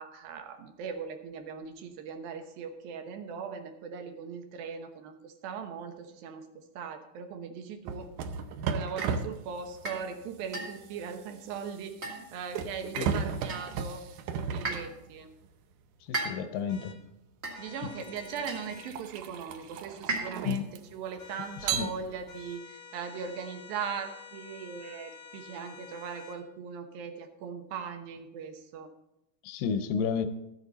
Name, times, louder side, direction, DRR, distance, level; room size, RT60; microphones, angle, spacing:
voice 1, 0.0-6.5 6.8-8.1 8.7-14.0 14.3-15.3 17.6-28.9, right 6 dB, 75° right, 6 dB, 2.7 m, -39 dB
sound 1, 7.9-15.5 16.8-17.0 17.7-21.1 21.6-22.5, right 6 dB, 90° right, 1.8 m, -36 dB
sound 2, 9.0-9.2 9.8-10.1 10.5-10.9 12.0-12.5 13.5-13.8 14.6-15.0 16.1-16.6 17.4-17.8 18.5-18.8 20.1-20.6, right 2 dB, 45° right, 0.8 m, -36 dB
voice 2, 16.1-16.9 20.4-20.7 21.7-21.9 29.4-30.3, left 6 dB, 75° left, 10 dB, 2.2 m, -31 dB
sound 3, 16.7-17.0 17.5-19.0 21.2-22.0 22.3-26.4, left 6 dB, 60° left, 1.4 m, -49 dB
13.5 x 8.2 x 4.0 m, 0.84 s
omnidirectional pair, 4.4 m